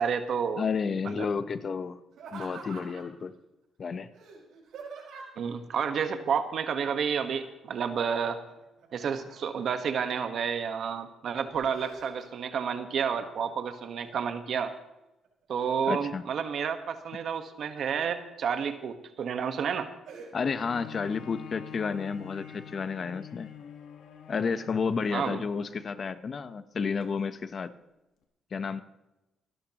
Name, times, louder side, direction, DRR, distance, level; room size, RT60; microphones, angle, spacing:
voice 1, 0.0-0.6 1.0-1.3 5.4-8.4 8.9-14.7 15.5-19.9 25.1-25.4, right 7 dB, 65° right, 8 dB, 1.4 m, -30 dB
voice 2, 0.6-2.0 2.3-3.3 3.8-4.1 15.9-16.2 20.3-23.5 24.3-27.7 28.5-28.8, left 5 dB, 45° left, 11 dB, 0.9 m, -31 dB
Laughter, 2.1-3.2 4.1-5.5 7.2-7.7 8.0-9.6 10.2-10.8 11.3-12.5 12.9-13.5 14.0-14.8 15.2-16.1 17.3-18.1 18.6-18.7 19.2-19.5 20.0-20.3, right 5 dB, 80° right, 5.4 m, -47 dB
Bowed string instrument, 20.6-26.2 26.9-27.0, left 8 dB, 80° left, 1.6 m, -46 dB
27.0 x 12.0 x 3.0 m, 0.95 s
cardioid pair, 90°, 0 cm